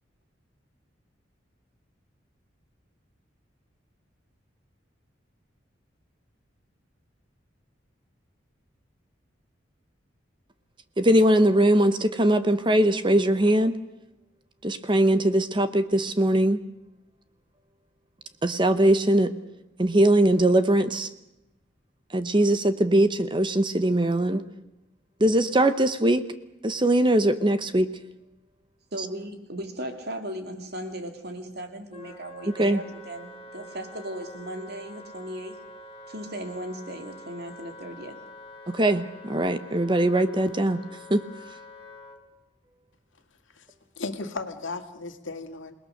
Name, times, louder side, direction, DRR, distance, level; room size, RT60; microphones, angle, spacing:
voice 1, 11.0-13.7 14.6-16.6 18.4-19.3 19.8-21.1 22.1-24.4 25.2-26.2 26.6-27.9 32.6-32.8 38.7-40.8 41.1-41.2, right 1 dB, 25° right, 10 dB, 0.9 m, -21 dB
voice 2, 28.9-35.6 36.1-38.2, right 1 dB, 55° right, 5 dB, 2.8 m, -37 dB
Wind instrument woodwind instrument, 31.9-42.2, left 1 dB, 30° left, 2.2 m, -46 dB
voice 3, 44.0-45.9, left 3 dB, 85° left, 6 dB, 2.1 m, -35 dB
28.0 x 20.0 x 6.6 m, 0.92 s
head